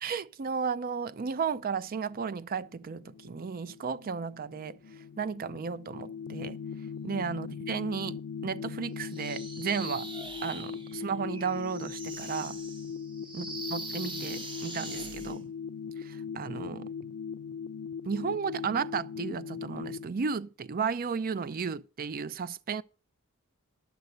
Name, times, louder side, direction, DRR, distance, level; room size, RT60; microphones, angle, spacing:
voice 1, 0.0-4.8 5.2-6.6 7.0-10.1 10.4-12.6 13.3-15.5 16.0-16.9 18.1-22.8, right 6 dB, 40° right, 0.4 m, -34 dB
sound 1, 1.0-20.1, left 6 dB, 70° left, 0.4 m, -40 dB
sound 2, 9.1-15.4, right 2 dB, 25° right, 1.2 m, -42 dB
11.5 x 5.2 x 7.8 m
head